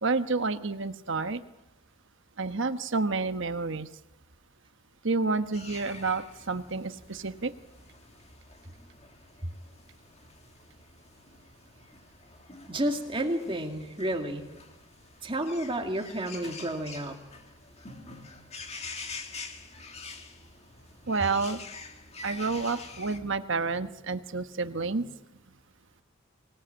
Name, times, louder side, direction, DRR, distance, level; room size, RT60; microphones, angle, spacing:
voice 1, 0.0-1.4 2.4-3.9 5.0-7.5 21.1-21.6 22.2-25.1, right 4 dB, 55° right, 9 dB, 1.2 m, -29 dB
sound 1, 5.5-23.2, left 4 dB, 30° left, 1.9 m, -46 dB
voice 2, 12.7-14.5 15.2-17.2, right 1 dB, 25° right, 3 dB, 2.3 m, -31 dB
24.5 x 18.5 x 8.9 m, 0.99 s
head